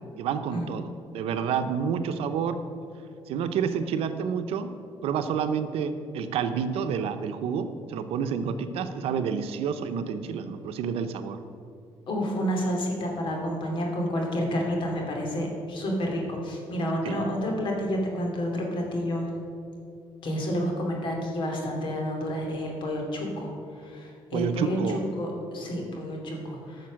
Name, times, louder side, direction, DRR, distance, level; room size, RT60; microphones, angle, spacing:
voice 1, 0.2-2.6 3.3-4.7 5.0-11.4 17.0-17.2 24.3-25.0, right 7 dB, 85° right, 9 dB, 0.8 m, -29 dB
voice 2, 12.1-19.3 20.2-26.9, equal, 55° left, 0 dB, 2.7 m, -30 dB
13.0 x 6.6 x 6.4 m, 2.5 s
cardioid pair, 125°, 10 cm